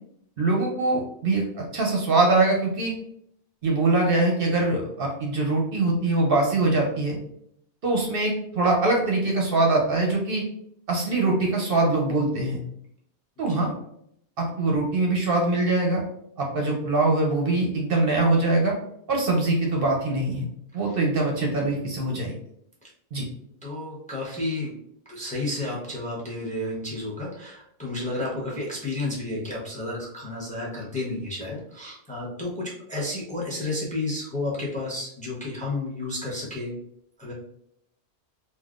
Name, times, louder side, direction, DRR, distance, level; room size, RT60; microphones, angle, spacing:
voice 1, 0.4-2.9 3.6-7.2 7.8-10.4 10.9-12.6 13.4-13.7 14.4-16.0 16.4-18.7 19.1-20.5 20.7-22.3 23.1-23.2, right 2 dB, 60° right, 0 dB, 0.7 m, -23 dB
voice 2, 23.6-24.7 25.1-36.7 37.2-37.3, left 2 dB, 10° left, -4 dB, 0.7 m, -31 dB
3.5 x 2.4 x 2.4 m, 0.72 s
omnidirectional pair, 1.2 m